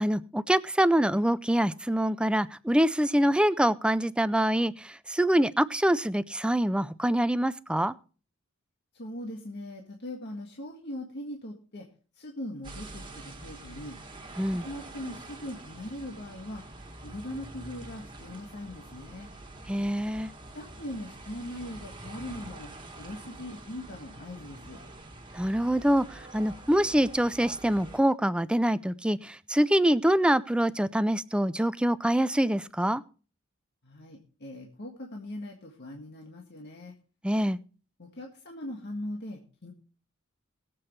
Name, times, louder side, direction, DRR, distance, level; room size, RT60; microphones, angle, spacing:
voice 1, 0.0-7.9 14.4-14.7 19.7-20.3 25.3-33.0 37.2-37.6, right 1 dB, 5° right, 15 dB, 0.4 m, -25 dB
voice 2, 8.9-11.9 12.1-14.0 14.5-16.6 17.0-19.3 20.5-24.8 33.8-36.9 38.0-39.7, left 1 dB, 55° left, 1 dB, 1.7 m, -40 dB
sound 1, 12.6-28.0, right 2 dB, 25° right, 1.9 m, -46 dB
21.5 x 7.7 x 3.2 m, 0.37 s
head